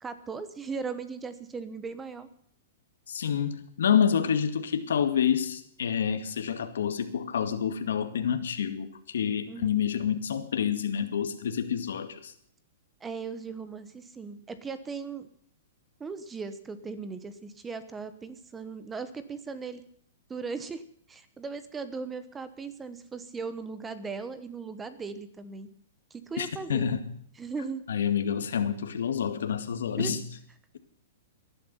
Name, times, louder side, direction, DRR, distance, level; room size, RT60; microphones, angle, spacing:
voice 1, 0.0-2.3 9.5-9.8 13.0-15.3 16.0-19.8 20.3-20.8 21.1-25.7 26.1-26.9 27.4-27.8 30.0-30.1, right 5 dB, 10° right, 13 dB, 1.1 m, -38 dB
voice 2, 3.1-12.3 26.4-27.1 27.9-30.2, left 8 dB, 90° left, 8 dB, 2.2 m, -28 dB
18.5 x 11.5 x 5.7 m, 0.64 s
hypercardioid pair, 160°, 0 cm